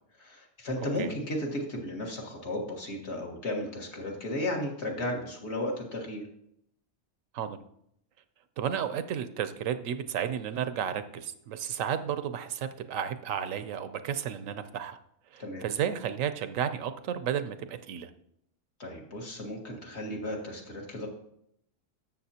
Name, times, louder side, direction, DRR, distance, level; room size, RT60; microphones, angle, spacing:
voice 1, 0.2-6.2 15.4-15.6 18.8-21.1, left 1 dB, 55° left, 0 dB, 1.9 m, -34 dB
voice 2, 8.6-15.0 15.3-18.1, right 8 dB, 80° right, 11 dB, 1.0 m, -32 dB
12.5 x 7.3 x 2.8 m, 0.73 s
omnidirectional pair, 1.3 m